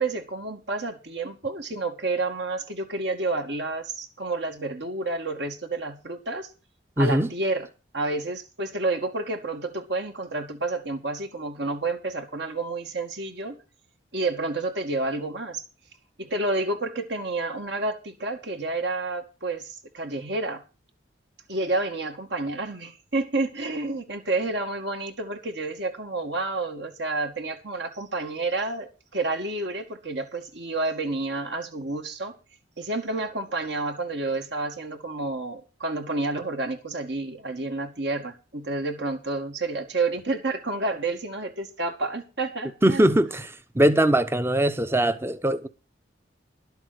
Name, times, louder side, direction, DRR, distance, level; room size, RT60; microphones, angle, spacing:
voice 1, 0.0-6.5 7.0-7.7 7.9-13.6 14.1-15.6 16.2-20.6 21.5-32.3 32.8-43.1, right 2 dB, 60° right, 2.2 m, -30 dB
voice 2, 7.0-7.3 42.8-45.7, right 1 dB, 15° right, 0.8 m, -21 dB
12.0 x 8.1 x 6.4 m
head